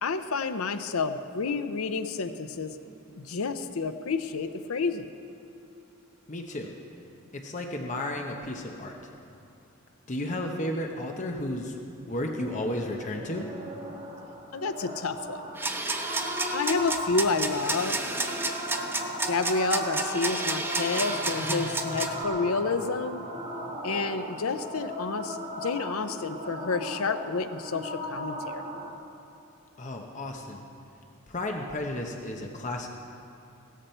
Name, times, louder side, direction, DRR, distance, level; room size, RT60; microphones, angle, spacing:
voice 1, 0.0-2.8 3.2-5.1 14.5-15.4 16.5-18.0 19.3-23.2 23.8-28.6, left 4 dB, 80° left, 10 dB, 0.7 m, -29 dB
voice 2, 6.3-6.7 7.3-9.1 10.1-11.8 12.1-13.5 29.8-30.6 31.3-32.9, left 1 dB, 35° left, 2 dB, 0.8 m, -33 dB
sound 1, 12.4-28.9, right 1 dB, 35° right, 1.5 m, -37 dB
sound 2, 15.6-22.2, right 2 dB, 10° right, 0.6 m, -31 dB
16.5 x 13.5 x 4.4 m, 2.7 s
head